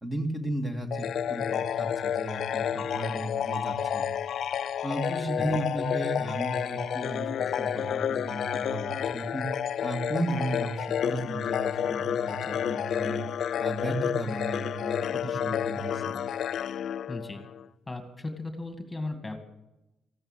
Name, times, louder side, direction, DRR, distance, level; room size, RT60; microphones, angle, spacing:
voice 1, 0.0-4.1 4.8-9.5 9.8-13.2 13.6-16.2, right 1 dB, 15° right, 4 dB, 2.1 m, -34 dB
sound 1, 0.9-17.7, left 9 dB, 65° left, 0.5 m, -30 dB
voice 2, 17.1-17.4 17.9-19.4, left 2 dB, 15° left, 6 dB, 2.2 m, -36 dB
15.0 x 12.0 x 7.4 m, 0.94 s
cardioid pair, 90°, 0 cm